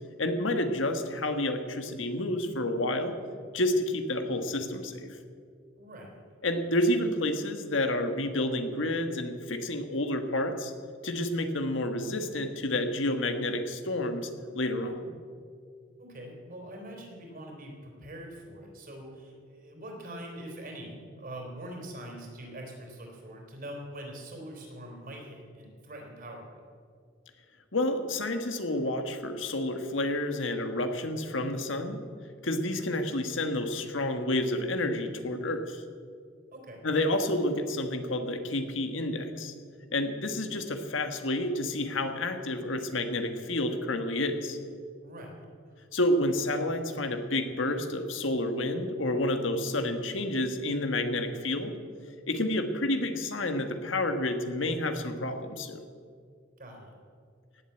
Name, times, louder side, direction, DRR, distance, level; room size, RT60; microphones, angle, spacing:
voice 1, 0.2-3.1 3.5-5.1 6.4-10.7 11.0-14.3 14.5-15.1 27.7-32.0 32.4-35.8 36.8-39.5 39.9-44.6 45.9-51.7 52.3-55.8, left 1 dB, 80° left, 6 dB, 1.5 m, -29 dB
voice 2, 5.8-6.1 16.0-26.6 36.5-36.9 45.0-45.8 56.6-57.0, right 1 dB, 50° right, 1 dB, 3.8 m, -43 dB
18.0 x 7.8 x 8.6 m, 2.2 s
head